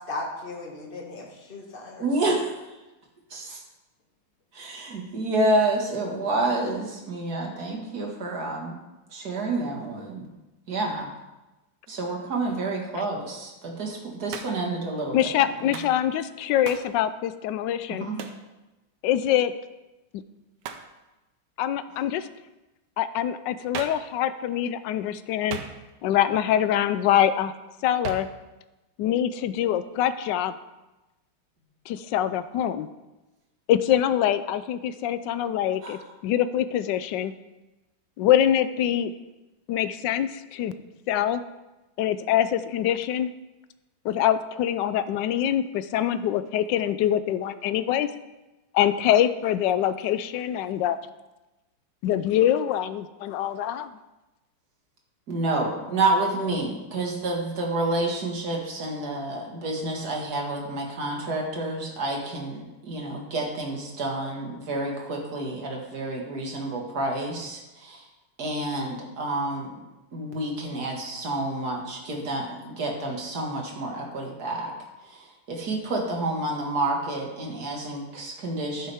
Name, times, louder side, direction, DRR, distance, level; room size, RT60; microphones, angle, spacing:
voice 1, 0.1-2.1, left 2 dB, 25° left, -2 dB, 2.0 m, -36 dB
voice 2, 2.0-2.6 3.3-3.6 4.5-8.8 9.1-10.2 10.7-11.1 11.9-15.3 15.7-15.8 18.0-18.2 35.8-36.0 55.3-68.0 68.4-69.8 70.1-74.7 75.0-78.9, right 2 dB, 45° right, 0 dB, 2.3 m, -29 dB
Hands, 14.3-14.7 15.7-16.0 16.6-16.9 18.2-18.4 20.6-20.9 23.7-24.1 25.5-26.1 28.0-28.4, right 7 dB, 65° right, 1.2 m, -37 dB
voice 3, 15.1-18.1 19.0-19.5 21.6-22.3 23.0-25.6 26.0-27.5 27.8-28.3 29.0-30.5 31.9-32.9 33.7-37.3 38.2-39.1 39.7-40.7 41.1-41.4 42.0-43.3 44.0-48.1 48.7-51.0 52.0-53.9, left 11 dB, 75° left, 13 dB, 1.0 m, -24 dB
12.0 x 9.7 x 3.5 m, 1.1 s
omnidirectional pair, 2.4 m